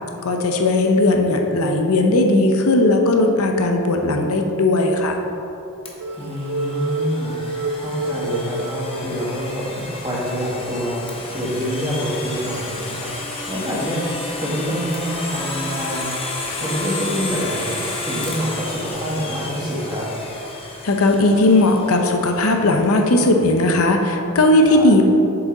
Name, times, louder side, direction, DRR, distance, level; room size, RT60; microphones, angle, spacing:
voice 1, 0.2-5.2 20.8-25.0, left 2 dB, 75° left, 3 dB, 0.7 m, -17 dB
Domestic sounds home sounds, 5.9-22.6, left 2 dB, 25° left, 0.8 m, -32 dB
sound 1, 6.0-9.8 10.3-10.4 10.9-11.0, right 2 dB, 80° right, 0.3 m, -28 dB
voice 2, 6.1-7.3 7.7-11.0 11.3-16.1 16.6-17.8 18.0-20.1 24.7-24.9, equal, 20° right, -5 dB, 1.4 m, -26 dB
7.3 x 5.2 x 3.8 m, 2.9 s
head